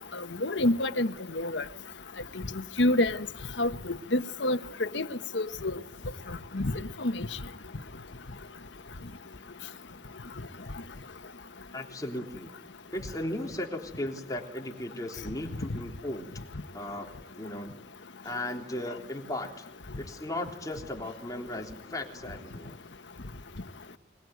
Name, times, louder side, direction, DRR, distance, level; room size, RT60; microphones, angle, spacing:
voice 1, 0.4-1.1 1.3-1.6 2.8-3.2 3.6-3.7 4.1-5.1 5.3-5.7 6.5-6.7 7.0-7.3, left 1 dB, 75° left, 1.2 m, -26 dB
voice 2, 11.7-12.5 12.9-16.3 16.7-17.1 17.4-17.8 18.2-19.7 20.0-22.7, left 1 dB, 20° left, 3.5 m, -36 dB
26.0 x 21.0 x 9.4 m
head